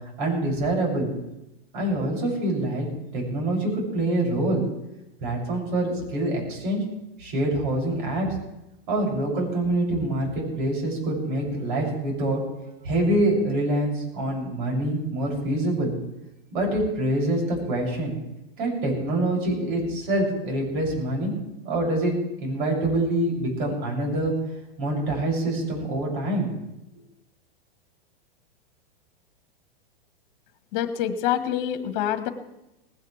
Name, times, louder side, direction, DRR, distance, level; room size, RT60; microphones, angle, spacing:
voice 1, 0.2-1.1 1.7-2.9 3.1-4.6 5.2-6.8 7.2-8.3 8.9-12.4 12.8-15.9 16.5-18.2 18.6-21.3 21.6-22.1 22.4-24.3 24.8-26.5, right 1 dB, 60° right, -1 dB, 7.8 m, -25 dB
voice 2, 30.7-32.3, left 10 dB, 50° left, 10 dB, 1.6 m, -26 dB
19.0 x 17.5 x 3.6 m, 0.93 s
hypercardioid pair, 110°, 29 cm